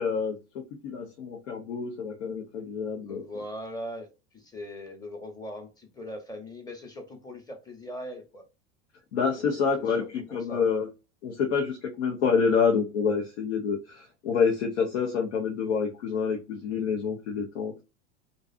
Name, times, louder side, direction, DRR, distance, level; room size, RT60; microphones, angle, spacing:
voice 1, 0.0-3.2 9.1-10.9 11.2-17.8, left 6 dB, 85° left, 1 dB, 0.7 m, -27 dB
voice 2, 3.1-4.1 4.3-8.4 9.4-10.6, left 1 dB, 10° left, 4 dB, 0.8 m, -40 dB
2.6 x 2.3 x 2.3 m, 0.28 s
hypercardioid pair, 100°, 34 cm